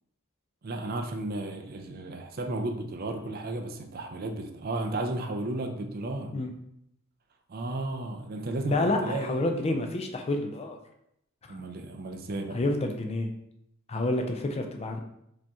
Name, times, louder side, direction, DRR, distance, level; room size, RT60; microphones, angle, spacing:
voice 1, 0.6-6.3 7.5-9.3 11.5-12.6, right 2 dB, 45° right, 4 dB, 0.5 m, -33 dB
voice 2, 8.7-10.8 12.5-13.3 13.9-15.0, left 2 dB, 30° left, 4 dB, 0.4 m, -28 dB
5.0 x 2.9 x 3.5 m, 0.77 s
head